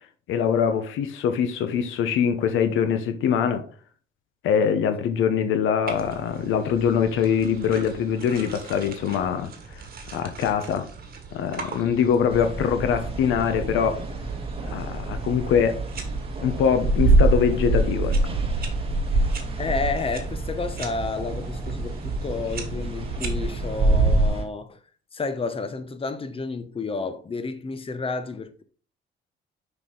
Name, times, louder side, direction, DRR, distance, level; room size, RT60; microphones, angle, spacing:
voice 1, 0.3-3.6 4.4-9.5 10.1-10.9 11.3-14.0 14.6-15.8 16.4-18.2, left 7 dB, 85° left, 1.0 m, -23 dB
sound 1, 5.9-24.3, right 2 dB, 50° right, 1.7 m, -27 dB
sound 2, 12.3-24.5, right 3 dB, 30° right, 1.6 m, -33 dB
voice 2, 19.6-24.8 25.1-28.6, left 4 dB, 30° left, 0.9 m, -31 dB
6.2 x 5.6 x 3.9 m
cardioid pair, 90°, 20 cm